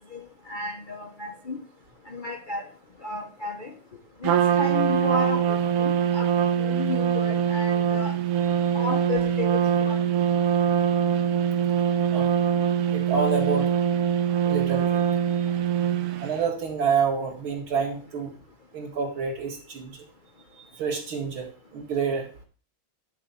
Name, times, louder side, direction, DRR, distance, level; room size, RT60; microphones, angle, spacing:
voice 1, 0.1-1.6 2.1-2.6 3.0-3.7 4.2-6.3 6.6-8.1 8.7-10.1, left 3 dB, 65° left, 3 dB, 0.4 m, -33 dB
Trumpet, 4.2-16.4, right 9 dB, 90° right, 1.6 m, -23 dB
voice 2, 12.9-13.7 14.2-15.0 16.2-18.3 18.7-20.1 20.6-22.3, right 5 dB, 70° right, -1 dB, 2.8 m, -28 dB
11.0 x 4.0 x 7.0 m, 0.41 s
omnidirectional pair, 2.4 m